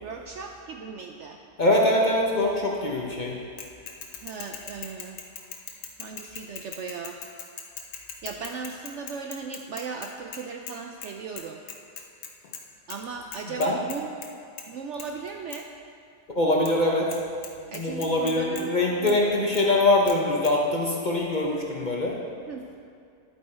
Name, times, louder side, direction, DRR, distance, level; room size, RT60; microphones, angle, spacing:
voice 1, 0.0-1.4 4.2-5.2 6.0-7.2 8.2-11.6 12.9-14.1 14.7-15.7 17.7-18.7 19.0-19.2 22.5-22.8, right 5 dB, 80° right, 3 dB, 0.6 m, -37 dB
voice 2, 1.6-3.4 13.6-13.7 16.3-17.1 17.7-22.2, left 2 dB, 40° left, -1 dB, 0.7 m, -23 dB
Bicycle / Mechanisms, 3.6-10.8 11.0-11.1 11.4-12.6 12.9-13.0 13.3-14.3 14.6-14.7 15.0-15.1 15.5-15.6 16.7-16.8 17.1-17.2 17.4-18.6 19.1-19.2 19.5-19.6 20.1-20.2 20.4-20.5, left 7 dB, 70° left, 1.3 m, -40 dB
10.5 x 8.0 x 4.3 m, 2.4 s
omnidirectional pair, 1.8 m